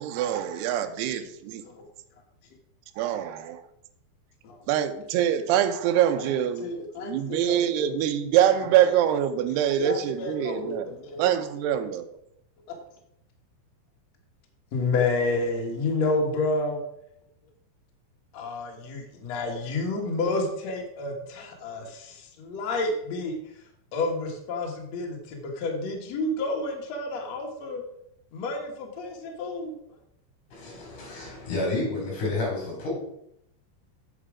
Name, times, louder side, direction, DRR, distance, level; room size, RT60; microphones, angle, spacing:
voice 1, 0.0-1.6 3.0-3.6 4.7-6.7 7.0-10.9 11.2-12.1, right 10 dB, 80° right, 7 dB, 2.5 m, -24 dB
voice 2, 6.6-8.0 9.8-11.3 12.7-12.8 14.7-16.8 18.3-23.3 23.9-27.8 28.3-29.8, left 3 dB, 60° left, 0 dB, 1.8 m, -30 dB
voice 3, 30.5-32.9, left 2 dB, 40° left, -2 dB, 5.2 m, -30 dB
8.4 x 7.5 x 4.9 m, 0.75 s
omnidirectional pair, 5.3 m